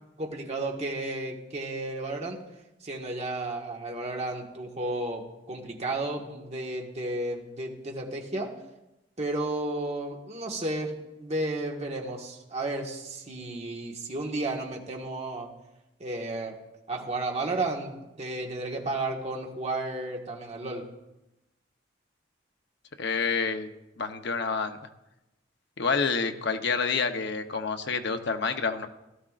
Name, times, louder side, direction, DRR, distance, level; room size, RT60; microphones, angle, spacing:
voice 1, 0.2-2.4 2.8-8.5 9.2-10.9 11.2-15.5 16.0-16.5 16.9-20.8, right 2 dB, 35° right, 1 dB, 1.5 m, -33 dB
voice 2, 23.0-23.7 24.0-24.8 25.8-28.9, left 5 dB, 65° left, 7 dB, 0.9 m, -28 dB
17.0 x 12.0 x 2.5 m, 0.95 s
head